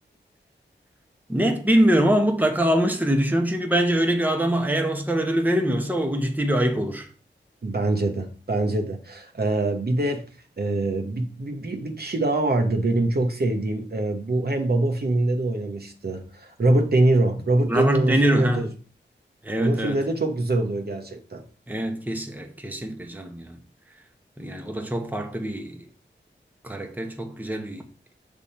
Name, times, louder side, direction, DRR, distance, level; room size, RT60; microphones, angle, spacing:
voice 1, 1.3-7.1 17.7-18.7 19.4-20.0 21.7-23.6 24.4-25.9 26.6-27.8, right 1 dB, 10° right, 1.0 m, -23 dB
voice 2, 7.6-10.2 10.6-18.7 19.6-21.4, right 2 dB, 55° right, 1.1 m, -24 dB
6.1 x 3.6 x 4.3 m
cardioid pair, 50°, 20 cm